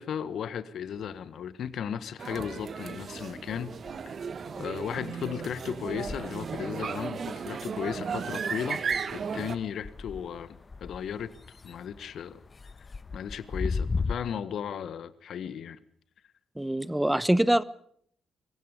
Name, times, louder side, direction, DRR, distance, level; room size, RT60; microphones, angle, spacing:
voice 1, 0.0-3.7 4.6-8.8 9.1-11.3 11.6-12.4 13.1-15.8, left 8 dB, 60° left, 1.5 m, -35 dB
sound 1, 0.9-2.1 2.4-14.1, left 4 dB, 35° left, 1.3 m, -39 dB
sound 2, 2.2-9.6, right 6 dB, 50° right, 2.0 m, -35 dB
voice 2, 16.6-17.6, right 1 dB, 10° right, 1.2 m, -24 dB
27.0 x 23.5 x 5.2 m
hypercardioid pair, 40°, 0 cm